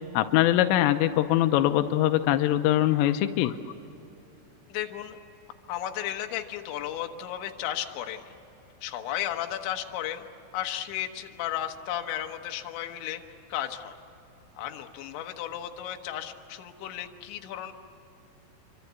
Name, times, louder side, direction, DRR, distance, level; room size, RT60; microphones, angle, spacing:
voice 1, 0.1-3.6, left 13 dB, 90° left, 8 dB, 3.3 m, -22 dB
voice 2, 4.7-5.2 5.7-8.3 8.8-10.3 10.5-13.2 13.5-14.0 14.6-17.7, left 11 dB, 75° left, 4 dB, 3.5 m, -34 dB
27.5 x 24.5 x 8.2 m, 2.9 s
omnidirectional pair, 5.6 m